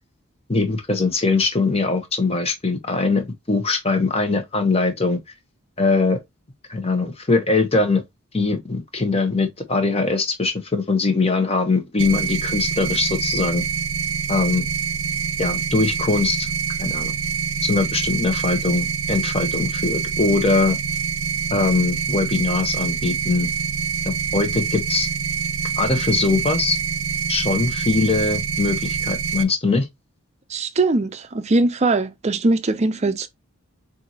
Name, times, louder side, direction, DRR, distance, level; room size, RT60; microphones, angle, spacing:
voice 1, 0.5-5.2 5.8-6.2 6.7-8.0 8.3-13.6 14.3-14.6 15.4-16.5 16.8-17.1 17.6-20.8 21.5-23.5 24.3-25.1 25.8-26.8 27.3-29.9, left 3 dB, 25° left, 1.0 m, -21 dB
sound 1, 12.0-29.4, right 6 dB, 65° right, 0.7 m, -25 dB
voice 2, 30.5-33.3, right 2 dB, 30° right, 0.5 m, -21 dB
6.8 x 2.6 x 2.8 m
head